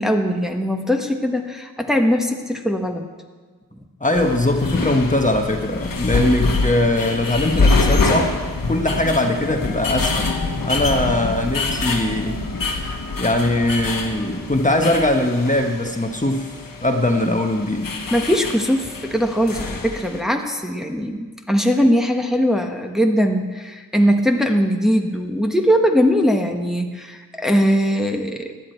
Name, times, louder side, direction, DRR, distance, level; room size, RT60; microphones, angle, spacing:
voice 1, 0.0-3.0 18.1-28.5, equal, ahead, 2 dB, 1.3 m, -20 dB
voice 2, 4.0-8.4 8.7-10.3 10.6-12.4 13.2-16.5 16.8-17.9, left 1 dB, 20° left, 3 dB, 1.2 m, -20 dB
sound 1, 4.1-20.2, left 3 dB, 75° left, 1.4 m, -25 dB
16.5 x 11.0 x 4.5 m, 1.4 s
wide cardioid pair, 55°, 34 cm